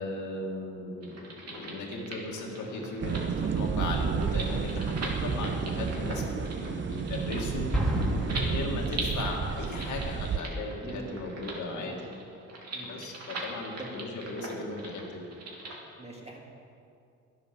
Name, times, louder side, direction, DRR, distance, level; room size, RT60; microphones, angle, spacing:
voice 1, 0.0-7.7 8.3-12.0 12.8-15.3, left 2 dB, 75° left, 0 dB, 2.3 m, -37 dB
sound 1, 1.0-15.8, right 2 dB, 55° right, 3.0 m, -41 dB
sound 2, 3.0-10.4, right 6 dB, 40° right, 0.6 m, -31 dB
Explosion, 7.7-9.6, left 1 dB, ahead, 2.4 m, -31 dB
voice 2, 10.8-11.2 11.7-12.1 12.7-13.0 13.8-14.0 16.0-16.4, right 2 dB, 20° right, -1 dB, 2.6 m, -43 dB
11.0 x 10.5 x 6.8 m, 2.6 s
cardioid pair, 90°, 30 cm